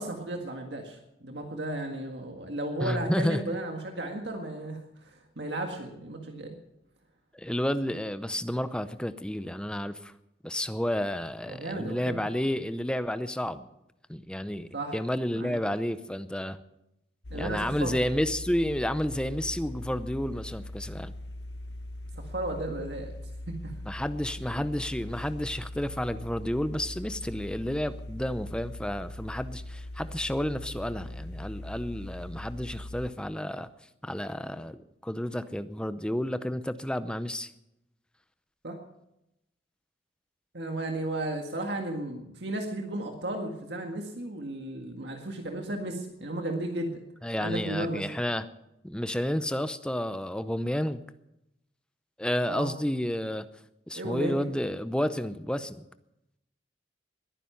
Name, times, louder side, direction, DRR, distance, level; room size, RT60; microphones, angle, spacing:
voice 1, 0.0-6.6 11.5-12.2 14.7-15.0 15.3-15.6 17.3-18.0 22.3-23.1 23.5-23.7 38.6-38.8 40.5-47.0 47.4-48.0 52.4-52.7 53.9-54.5, right 1 dB, 75° right, 3 dB, 1.8 m, -34 dB
voice 2, 2.8-3.5 7.3-10.1 10.4-13.7 14.1-16.6 17.3-21.1 23.8-33.7 34.0-37.5 47.2-48.5 48.8-51.0 52.2-53.5 53.9-55.8, equal, 5° left, 12 dB, 0.6 m, -31 dB
sound 1, 17.2-33.1, left 1 dB, 75° left, 1.1 m, -41 dB
21.0 x 10.0 x 5.8 m, 0.84 s
head